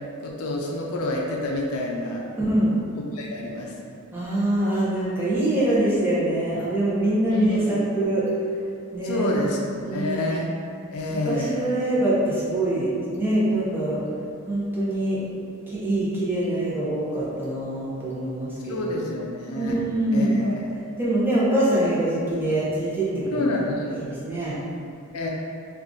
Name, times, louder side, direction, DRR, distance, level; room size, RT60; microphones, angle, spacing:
voice 1, 0.2-2.2 3.1-3.7 7.3-7.8 9.0-9.6 9.9-10.5 10.9-11.7 18.7-19.8 20.1-20.7 23.3-24.0 25.1-25.3, left 1 dB, 90° left, -1 dB, 0.4 m, -28 dB
voice 2, 2.4-2.7 4.1-8.3 8.9-9.5 9.8-10.4 11.3-14.0 14.5-15.2 15.7-18.9 19.6-20.6 21.0-23.4 23.9-24.6, right 1 dB, 10° right, -9 dB, 0.7 m, -24 dB
2.7 x 2.4 x 3.6 m, 2.5 s
head